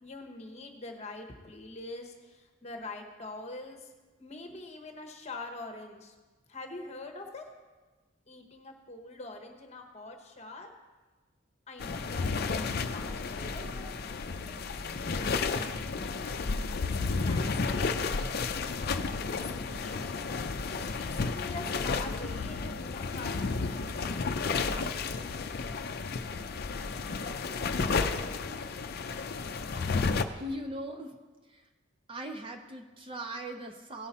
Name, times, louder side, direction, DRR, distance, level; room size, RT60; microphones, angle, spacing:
voice 1, 0.0-3.9 4.2-6.1 6.5-7.5 8.3-10.7 11.7-13.8 14.5-16.0 16.9-18.0 19.3-20.3 20.8-23.9, left 2 dB, 35° left, 4 dB, 1.1 m, -45 dB
sound 1, 11.8-30.2, left 4 dB, 50° left, 0.5 m, -32 dB
voice 2, 30.4-31.2 31.5-31.6 32.1-34.1, right 1 dB, 25° right, 4 dB, 0.6 m, -39 dB
17.0 x 5.7 x 4.2 m, 1.3 s
head